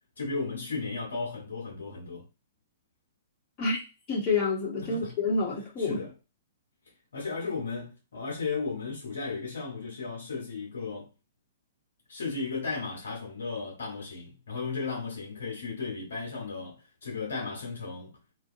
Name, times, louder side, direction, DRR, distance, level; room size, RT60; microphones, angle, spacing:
voice 1, 0.2-2.2 4.8-5.2 5.8-6.1 7.1-11.1 12.1-18.2, left 4 dB, 75° left, 1.0 m, -35 dB
voice 2, 4.1-6.0, left 3 dB, 35° left, 1.0 m, -28 dB
2.5 x 2.1 x 2.6 m
hypercardioid pair, 120°, 0 cm